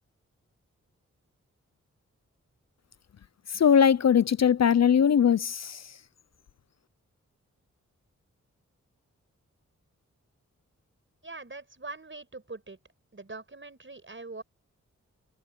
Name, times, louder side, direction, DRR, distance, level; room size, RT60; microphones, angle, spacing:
voice 1, 3.5-5.8, left 8 dB, 60° left, 0.6 m, -21 dB
voice 2, 11.2-12.8 13.1-14.4, right 3 dB, 40° right, 5.9 m, -42 dB
cardioid pair, 40°, 30 cm